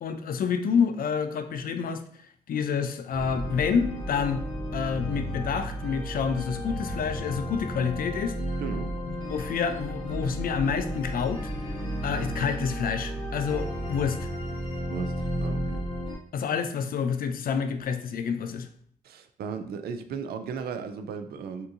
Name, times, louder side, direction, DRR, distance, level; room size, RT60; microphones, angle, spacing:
voice 1, 0.0-4.4 4.7-8.3 9.1-11.5 12.0-14.3 16.3-18.7, left 6 dB, 65° left, 8 dB, 0.4 m, -28 dB
sound 1, 3.1-16.2, equal, 30° left, 1.4 m, -33 dB
voice 2, 8.6-8.9 14.9-15.8 19.0-21.7, right 6 dB, 75° right, 9 dB, 0.4 m, -36 dB
3.5 x 2.7 x 2.6 m, 0.63 s
cardioid pair, 65°, 16 cm